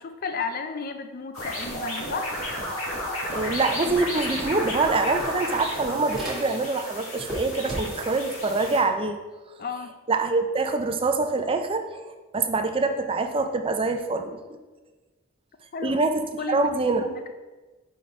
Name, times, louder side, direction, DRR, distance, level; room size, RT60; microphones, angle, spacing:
voice 1, 0.0-2.3 9.6-9.9 15.7-16.0 16.4-16.7 17.0-17.3, left 4 dB, 45° left, 8 dB, 0.5 m, -33 dB
sound 1, 1.3-8.8, left 1 dB, 70° left, 1.6 m, -32 dB
voice 2, 3.3-9.2 10.1-12.0 12.3-14.4 15.8-16.1 16.5-17.1, right 3 dB, 25° right, 6 dB, 0.4 m, -25 dB
sound 2, 4.9-6.8 7.1-8.2, right 1 dB, ahead, 1.5 m, -37 dB
4.9 x 4.1 x 4.7 m, 1.2 s
head